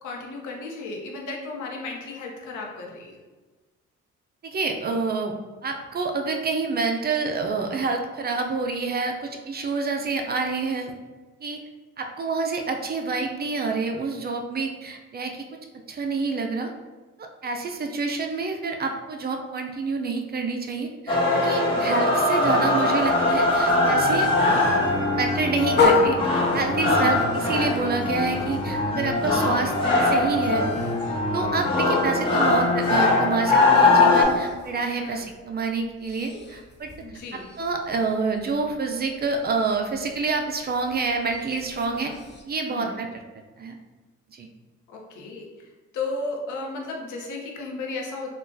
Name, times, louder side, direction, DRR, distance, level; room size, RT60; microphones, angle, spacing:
voice 1, 0.0-3.2 21.6-22.0 35.0-35.3 37.0-37.5 41.9-42.2 42.7-43.0 44.9-45.7 45.9-48.3, left 3 dB, 75° left, 0 dB, 0.7 m, -34 dB
voice 2, 4.5-5.3 5.6-10.9 11.4-11.6 12.0-15.4 15.9-16.7 17.2-24.3 25.1-26.2 26.5-29.7 30.0-30.6 31.1-36.9 37.6-42.1 42.4-43.2 43.6-43.8 44.3-44.5, right 4 dB, 35° right, 3 dB, 0.4 m, -27 dB
sound 1, 21.1-34.2, left 2 dB, 15° left, 1.0 m, -21 dB
sound 2, 23.0-35.5 35.8-42.4, left 4 dB, 35° left, 0.6 m, -31 dB
3.7 x 2.3 x 2.6 m, 1.3 s
cardioid pair, 90°, 30 cm